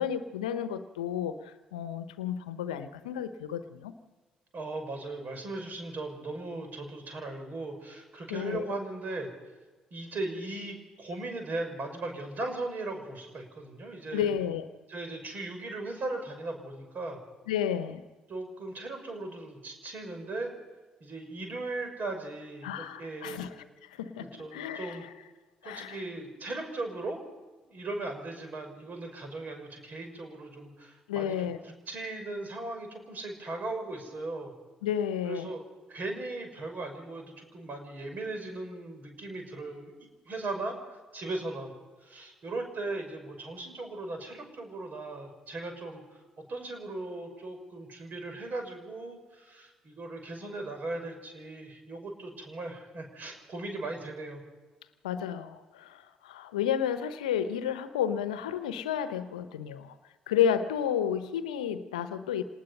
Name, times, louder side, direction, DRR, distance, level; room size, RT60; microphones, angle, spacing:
voice 1, 0.0-3.9 8.3-8.7 14.1-14.7 17.5-18.0 22.6-23.5 23.9-25.0 25.6-26.0 31.1-31.6 34.8-35.5 55.0-59.9 60.3-62.4, left 9 dB, 85° left, 11 dB, 0.9 m, -31 dB
voice 2, 4.5-9.3 9.9-14.3 14.9-17.2 18.3-20.5 21.0-23.5 24.2-25.0 25.6-27.2 27.6-34.5 35.3-35.6 35.9-39.9 40.2-41.7 42.0-54.4, right 2 dB, 50° right, 5 dB, 6.1 m, -38 dB
27.0 x 19.5 x 5.6 m, 1.3 s
hypercardioid pair, 45°, 4 cm